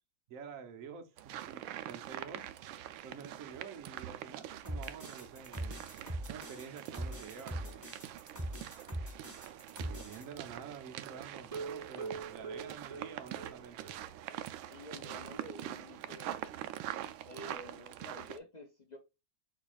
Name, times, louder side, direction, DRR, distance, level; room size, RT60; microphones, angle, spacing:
voice 1, 0.3-2.4 3.0-5.8 6.3-7.9 9.8-13.9, right 6 dB, 50° right, 1.1 m, -48 dB
sound 1, 1.2-18.4, right 12 dB, 85° right, 1.4 m, -45 dB
sound 2, 4.6-10.2, equal, 10° right, 1.6 m, -41 dB
sound 3, 11.5-14.0 14.3-14.4 14.8-14.9 15.2-15.3, right 5 dB, 30° right, 0.7 m, -43 dB
voice 2, 14.7-16.4 17.2-19.0, left 1 dB, 70° left, 0.4 m, -50 dB
4.6 x 4.6 x 2.4 m
omnidirectional pair, 2.1 m